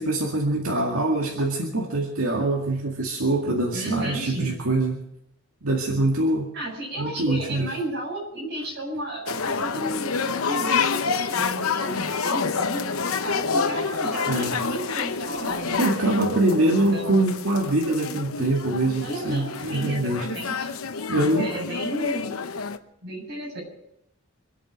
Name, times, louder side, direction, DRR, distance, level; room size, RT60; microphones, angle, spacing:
voice 1, 0.0-5.0 5.6-6.5 7.0-7.7 14.3-14.5 15.8-20.3 21.1-21.5, right 2 dB, 80° right, -1 dB, 2.1 m, -24 dB
voice 2, 3.7-4.6 6.5-15.8 16.6-17.2 19.0-20.7 21.1-22.4 23.0-23.6, right 1 dB, 50° right, -1 dB, 7.6 m, -33 dB
sound 1, 9.3-22.8, left 5 dB, 80° left, 0.9 m, -28 dB
26.0 x 8.8 x 6.2 m, 0.80 s
head